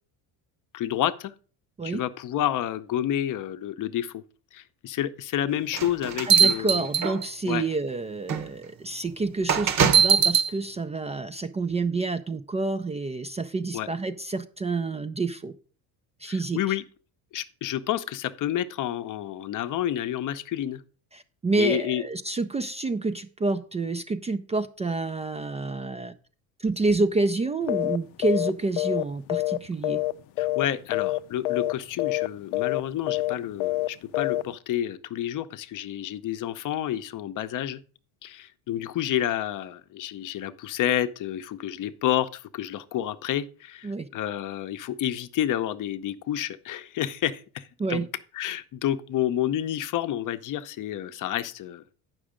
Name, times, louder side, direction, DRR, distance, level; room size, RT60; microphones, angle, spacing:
voice 1, 0.7-1.3 1.8-4.2 4.5-6.9 7.4-7.6 13.7-13.9 16.3-16.8 17.3-20.8 21.6-22.0 30.4-37.8 38.2-48.1 48.3-52.0, left 11 dB, 50° left, 0.7 m, -29 dB
sound 1, 5.7-7.5 8.3-8.4 9.5-10.5, right 7 dB, 40° right, 1.0 m, -20 dB
voice 2, 6.3-15.5 16.2-16.6 21.1-26.1 26.6-30.0 43.8-44.1 47.8-48.1, right 3 dB, 15° right, 0.4 m, -28 dB
sound 2, 27.7-28.0 28.2-28.5 28.8-30.1 30.4-30.7 30.9-31.2 31.4-31.7 32.0-32.3 32.5-32.8 33.1-33.3 33.6-33.9 34.1-34.4, left 19 dB, 90° left, 0.5 m, -26 dB
8.6 x 6.2 x 5.0 m
cardioid pair, 115°, 40 cm